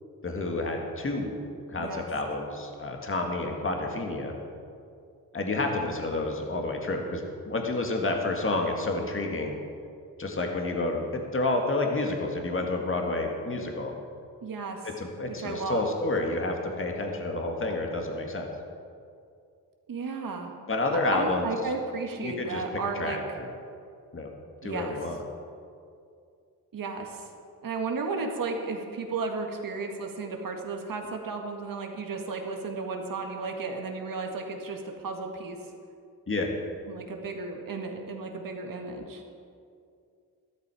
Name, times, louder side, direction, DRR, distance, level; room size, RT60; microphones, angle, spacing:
voice 1, 0.2-1.4 1.7-4.4 5.3-9.6 10.2-13.9 15.0-18.5 20.7-21.5 22.2-23.5 24.1-24.3 24.6-25.2 36.3-36.5, left 2 dB, 35° left, 2 dB, 2.0 m, -29 dB
voice 2, 1.8-2.1 14.4-14.9 15.4-15.9 19.9-20.5 21.1-23.2 24.6-25.2 26.7-27.3 27.6-35.6 36.9-39.2, right 4 dB, 65° right, 3 dB, 1.9 m, -34 dB
13.5 x 12.5 x 5.0 m, 2.4 s
cardioid pair, 75°, 37 cm